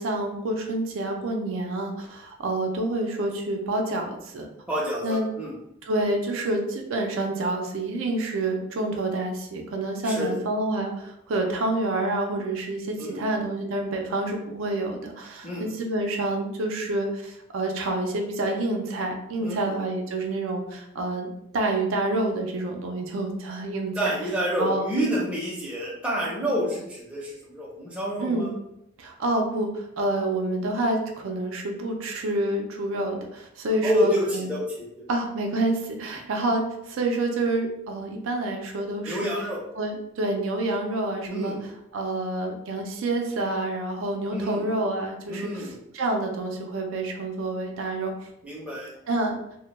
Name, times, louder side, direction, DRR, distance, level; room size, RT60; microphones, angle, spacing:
voice 1, 0.0-4.5 5.0-5.2 5.8-24.1 24.6-24.9 28.2-28.5 29.0-34.5 35.1-39.3 39.7-41.6 41.9-48.3 49.1-49.4, right 2 dB, 70° right, 2 dB, 0.4 m, -28 dB
voice 2, 4.7-5.5 10.0-10.4 13.0-13.4 15.4-15.7 19.4-19.8 24.0-28.5 33.8-35.1 39.0-39.6 41.3-41.6 44.3-44.6 45.3-45.7 48.4-48.9, equal, 5° right, -5 dB, 0.5 m, -28 dB
2.1 x 2.1 x 3.0 m, 0.81 s
head